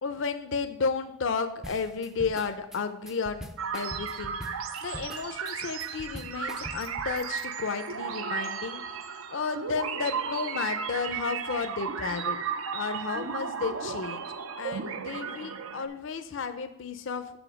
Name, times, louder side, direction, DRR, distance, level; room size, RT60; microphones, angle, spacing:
voice 1, 0.0-4.4 4.8-8.8 9.3-12.4 12.7-14.3 14.6-17.3, left 5 dB, 65° left, 9 dB, 0.5 m, -33 dB
sound 1, 1.6-7.1, equal, 5° right, 0.3 m, -43 dB
sound 2, 3.6-15.9, right 6 dB, 85° right, 0.6 m, -34 dB
7.0 x 5.6 x 5.9 m, 0.86 s
head